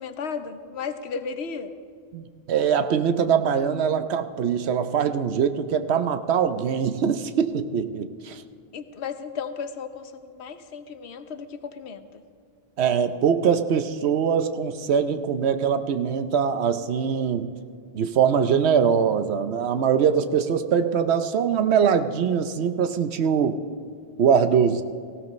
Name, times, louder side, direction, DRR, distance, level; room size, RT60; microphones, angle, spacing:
voice 1, 0.0-1.7 8.7-12.1, left 6 dB, 75° left, 10 dB, 1.0 m, -34 dB
voice 2, 2.1-8.4 12.8-17.5 17.9-23.6 24.2-24.8, right 7 dB, 75° right, 9 dB, 0.9 m, -22 dB
18.0 x 16.0 x 3.1 m, 2.3 s
omnidirectional pair, 1.1 m